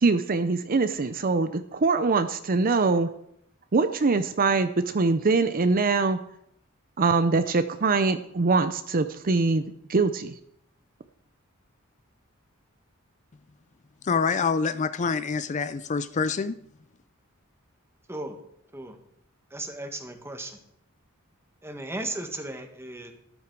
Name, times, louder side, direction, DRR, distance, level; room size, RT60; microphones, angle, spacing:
voice 1, 0.0-3.1 3.7-6.2 7.0-9.6 9.9-10.3, right 4 dB, 45° right, 11 dB, 0.6 m, -23 dB
voice 2, 14.0-16.5, left 5 dB, 35° left, 13 dB, 0.4 m, -26 dB
voice 3, 19.5-20.6 21.6-23.1, right 2 dB, 10° right, 5 dB, 1.6 m, -36 dB
13.5 x 11.5 x 4.7 m, 0.74 s
head